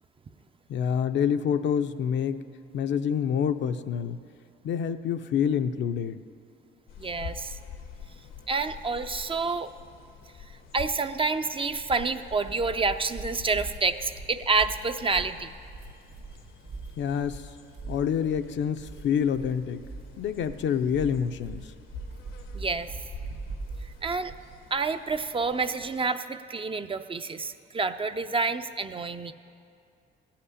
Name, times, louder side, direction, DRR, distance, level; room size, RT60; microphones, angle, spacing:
voice 1, 0.7-2.4 2.7-4.2 4.6-6.2 17.0-17.5 17.9-19.8 20.2-21.7, left 8 dB, 65° left, 9 dB, 0.6 m, -27 dB
sound 1, 6.9-26.0, left 7 dB, 80° left, 1.0 m, -47 dB
voice 2, 7.0-7.6 8.5-9.7 10.7-15.5 22.5-22.9 24.0-24.3 24.7-29.3, right 4 dB, 25° right, 9 dB, 0.5 m, -28 dB
sound 2, 12.2-24.6, right 3 dB, 60° right, 1.5 m, -42 dB
14.5 x 5.8 x 9.8 m, 2.4 s
cardioid pair, 90°, 20 cm